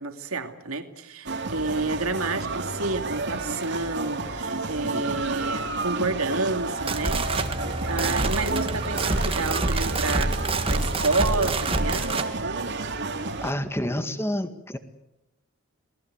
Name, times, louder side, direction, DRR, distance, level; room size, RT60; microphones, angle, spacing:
voice 1, 0.0-7.2 7.9-10.4 10.7-13.0, right 3 dB, 70° right, 6 dB, 2.7 m, -29 dB
sound 1, 1.3-13.5, right 3 dB, 50° right, 2.4 m, -31 dB
sound 2, 6.6-12.3, right 2 dB, 25° right, 1.7 m, -27 dB
voice 2, 13.4-14.8, left 1 dB, 10° left, 9 dB, 1.9 m, -29 dB
27.0 x 19.5 x 8.1 m, 0.90 s
head